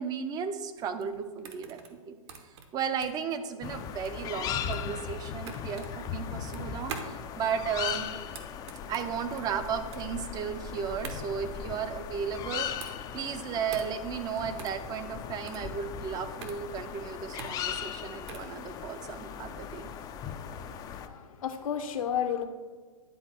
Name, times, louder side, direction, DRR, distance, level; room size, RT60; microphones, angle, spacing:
voice 1, 0.0-2.2 2.4-8.1 8.9-19.9, right 7 dB, 20° right, 10 dB, 0.6 m, -35 dB
sound 1, 0.8-18.6, right 6 dB, 50° right, 1.1 m, -46 dB
sound 2, 3.6-21.1, left 8 dB, 20° left, 0.4 m, -38 dB
voice 2, 20.8-22.4, left 9 dB, 70° left, 6 dB, 0.8 m, -32 dB
10.0 x 3.9 x 4.4 m, 1.4 s
hypercardioid pair, 130°, 18 cm